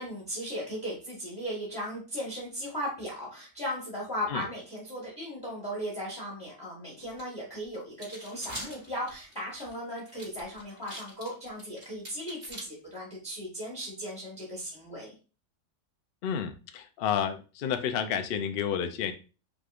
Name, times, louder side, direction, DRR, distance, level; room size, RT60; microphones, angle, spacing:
voice 1, 0.0-15.1, equal, 15° left, -5 dB, 1.4 m, -37 dB
sound 1, 7.2-7.3 7.7-12.6, right 1 dB, 50° right, 2.8 m, -43 dB
voice 2, 16.2-19.1, left 8 dB, 85° left, 8 dB, 0.5 m, -30 dB
5.2 x 3.2 x 2.5 m, 0.34 s
omnidirectional pair, 1.7 m